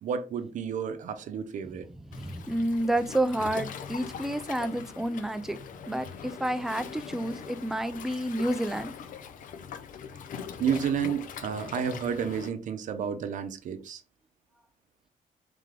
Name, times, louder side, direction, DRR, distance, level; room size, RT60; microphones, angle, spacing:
voice 1, 0.0-1.9 10.6-14.0, right 7 dB, 60° right, 0.6 m, -31 dB
Waves surf, 2.1-12.5, left 7 dB, 70° left, 0.5 m, -42 dB
voice 2, 2.1-5.6 5.9-6.1 6.4-8.9, right 1 dB, 5° right, 0.3 m, -29 dB
3.6 x 3.4 x 3.3 m
cardioid pair, 155°, 14 cm